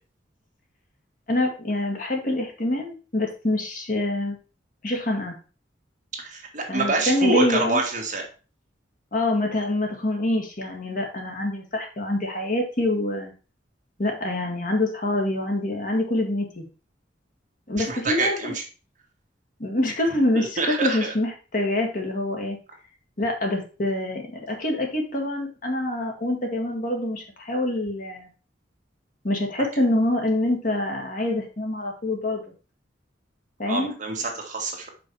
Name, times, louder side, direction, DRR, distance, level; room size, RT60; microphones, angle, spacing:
voice 1, 1.3-4.4 4.8-5.4 6.7-7.8 9.1-13.3 14.0-16.6 17.7-18.5 19.6-22.6 23.2-28.3 29.2-32.4 33.6-33.9, left 1 dB, 45° left, 2 dB, 1.7 m, -25 dB
voice 2, 6.2-8.2 17.8-18.6 20.3-21.1 33.7-34.9, right 3 dB, 40° right, 0 dB, 1.7 m, -26 dB
5.6 x 5.5 x 4.6 m, 0.35 s
head